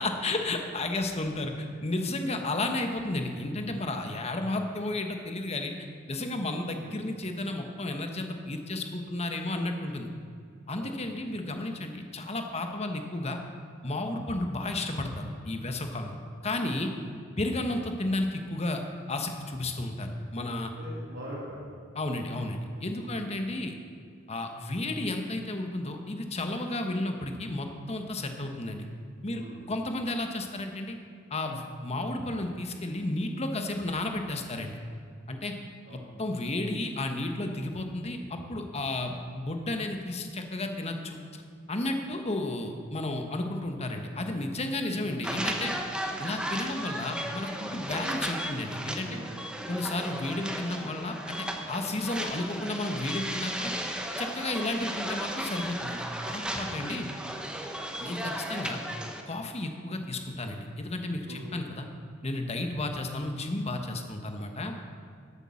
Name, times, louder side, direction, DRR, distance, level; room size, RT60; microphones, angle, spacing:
voice 1, 0.0-5.7 6.1-10.1 10.7-13.4 13.8-16.2 16.4-16.9 17.4-18.8 19.1-20.7 22.0-23.7 24.3-28.9 29.2-31.0 31.3-34.8 35.3-35.5 35.9-41.2 41.7-45.7 46.2-49.2 49.7-53.7 54.2-57.1 58.0-58.8 59.3-61.9 62.2-64.7, left 2 dB, 30° left, 5 dB, 1.1 m, -32 dB
voice 2, 20.8-21.8 23.0-23.3 29.3-29.6 35.9-36.1 44.9-45.1 49.0-49.3 56.6-56.7 61.3-61.4, equal, 60° right, -6 dB, 2.9 m, -43 dB
sound 1, 45.2-59.2, right 1 dB, 5° right, 0.9 m, -35 dB
13.0 x 8.4 x 6.3 m, 2.2 s
head